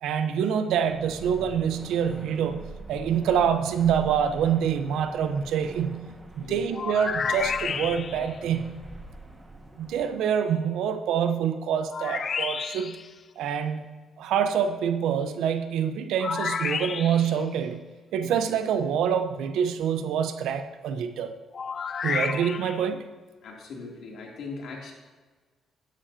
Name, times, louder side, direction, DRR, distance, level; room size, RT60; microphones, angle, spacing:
voice 1, 0.0-6.1 6.4-8.7 9.8-13.0 13.4-13.8 14.2-17.8 18.1-21.3 22.0-23.0, right 8 dB, 85° right, 8 dB, 0.9 m, -26 dB
sound 1, 0.8-10.1, right 2 dB, 15° right, 1.7 m, -44 dB
sound 2, 6.7-8.4 11.9-13.1 16.2-17.4 21.5-22.9, left 6 dB, 45° left, 0.5 m, -31 dB
voice 2, 23.4-24.9, left 4 dB, 70° left, -1 dB, 3.0 m, -39 dB
13.0 x 10.5 x 2.9 m, 1.4 s
cardioid pair, 90°, 0 cm